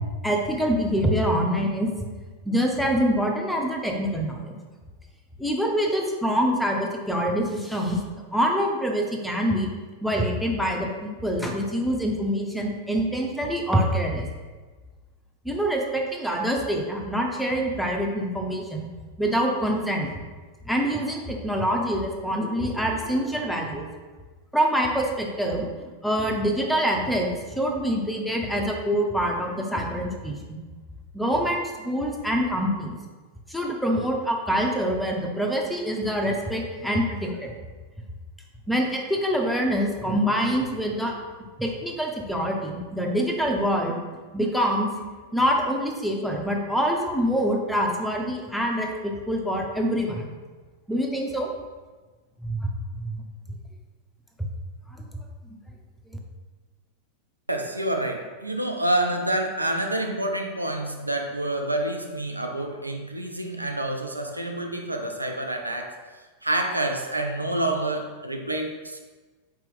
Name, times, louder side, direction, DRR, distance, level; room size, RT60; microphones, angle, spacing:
voice 1, 0.2-1.9 2.4-4.5 5.4-8.0 8.3-9.7 10.0-14.3 15.4-18.9 19.2-20.1 20.7-23.9 24.5-30.6 31.1-33.0 33.5-37.5 38.7-41.2 41.6-44.0 44.3-44.9 45.3-50.3 50.9-51.5 52.4-52.7 52.9-53.2 54.4-54.5 56.1-56.2, equal, ahead, 0 dB, 0.6 m, -25 dB
voice 2, 57.5-66.0 66.4-69.0, right 1 dB, 85° right, 3 dB, 0.3 m, -28 dB
4.3 x 2.9 x 3.5 m, 1.3 s
figure-of-eight pair, 90°, 0 cm